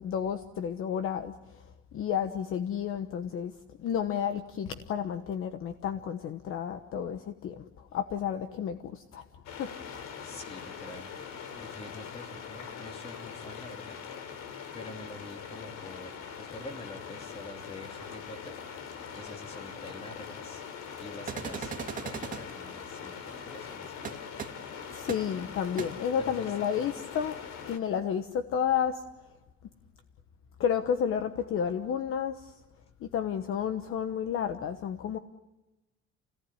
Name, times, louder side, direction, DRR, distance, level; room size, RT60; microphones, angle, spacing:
voice 1, 0.0-1.6 1.9-3.5 3.8-9.2 9.6-10.1 24.9-27.4 27.7-29.0 30.6-32.5 33.0-35.2, left 8 dB, 45° left, 9 dB, 1.2 m, -31 dB
sound 1, 9.5-27.8, left 7 dB, 70° left, 3.3 m, -42 dB
voice 2, 10.2-11.1 11.5-14.0 14.7-20.6 21.0-24.0 26.2-26.7, left 2 dB, 20° left, 4 dB, 2.9 m, -46 dB
sound 2, 21.3-22.4 24.0-24.1 24.4-24.5 25.1-25.2 25.8-25.9, right 7 dB, 25° right, 2.3 m, -36 dB
29.0 x 18.5 x 9.9 m, 1.0 s
cardioid pair, 175°, 29 cm